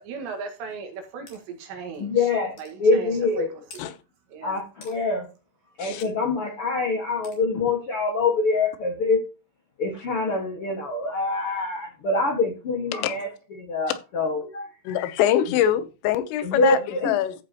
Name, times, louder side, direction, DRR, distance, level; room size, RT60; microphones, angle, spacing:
voice 1, 0.0-2.3 2.6-3.1 3.4-3.5 3.7-3.8 4.3-4.6, right 5 dB, 65° right, 3.8 m, -37 dB
sound 1, 1.3-1.4 1.9-2.0 2.6-2.7 3.7-3.9 4.8-5.0 6.0-6.1 7.2-7.4, left 4 dB, 45° left, 3.9 m, -47 dB
voice 2, 2.0-3.5 4.4-5.3 5.8-9.2 9.8-13.3 13.6-14.7 16.4-17.2, left 3 dB, 70° left, 1.3 m, -25 dB
voice 3, 14.9-17.4, left 11 dB, 85° left, 3.5 m, -24 dB
14.0 x 7.0 x 3.0 m
omnidirectional pair, 5.6 m